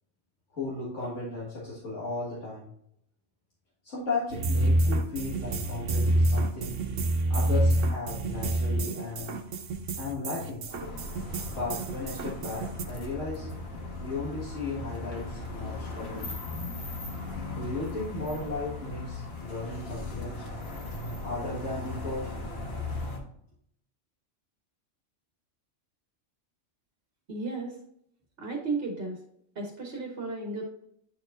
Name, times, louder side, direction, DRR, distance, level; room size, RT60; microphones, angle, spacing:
voice 1, 0.5-2.7 3.8-6.8 7.3-9.4 10.0-10.6 11.6-13.5 14.0-16.4 17.5-20.5 21.2-22.3, left 3 dB, 85° left, -8 dB, 2.0 m, -35 dB
sound 1, 4.3-12.9, right 1 dB, 85° right, 1.1 m, -27 dB
sound 2, 10.7-23.2, left 2 dB, 55° left, 1.4 m, -38 dB
voice 2, 27.3-27.8 28.4-29.2 29.5-30.6, right 3 dB, 55° right, 0 dB, 1.3 m, -34 dB
9.3 x 4.5 x 2.5 m, 0.71 s
omnidirectional pair, 1.2 m